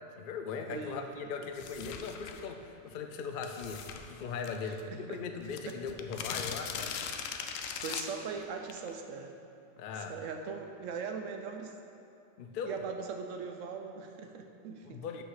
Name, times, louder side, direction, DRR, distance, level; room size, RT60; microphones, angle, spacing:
voice 1, 0.2-7.0 9.8-10.2 12.4-12.8 14.8-15.2, left 5 dB, 60° left, 5 dB, 0.5 m, -39 dB
voice 2, 0.7-1.3 1.8-2.0 4.6-4.8 5.1-5.2 5.7-5.8 7.7-9.4 10.1-11.7 12.6-15.0, right 5 dB, 75° right, 5 dB, 1.0 m, -40 dB
sound 1, 1.5-2.5 3.4-4.8 5.1-5.2 5.4-8.9, left 7 dB, 85° left, 1.0 m, -40 dB
6.5 x 5.6 x 5.7 m, 2.8 s
omnidirectional pair, 1.3 m